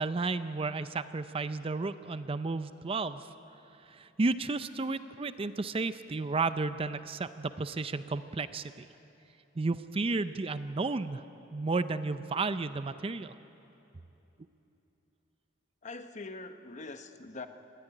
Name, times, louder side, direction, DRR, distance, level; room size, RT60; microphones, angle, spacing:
voice 1, 0.0-3.3 3.8-8.9 9.6-11.2 11.5-13.3, right 3 dB, 30° right, 12 dB, 0.5 m, -32 dB
voice 2, 15.8-17.5, left 3 dB, 40° left, 8 dB, 0.9 m, -43 dB
19.5 x 14.5 x 9.9 m, 2.9 s
head